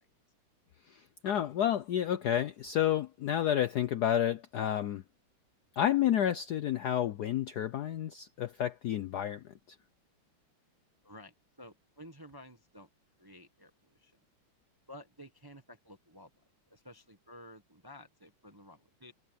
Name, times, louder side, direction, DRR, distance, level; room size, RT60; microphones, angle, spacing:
voice 1, 0.9-5.0 5.8-9.5, left 10 dB, 70° left, 0.9 m, -30 dB
voice 2, 11.0-12.9 13.2-14.2 14.9-16.3 16.7-19.1, left 1 dB, 15° right, 0.8 m, -53 dB
omnidirectional pair, 2.4 m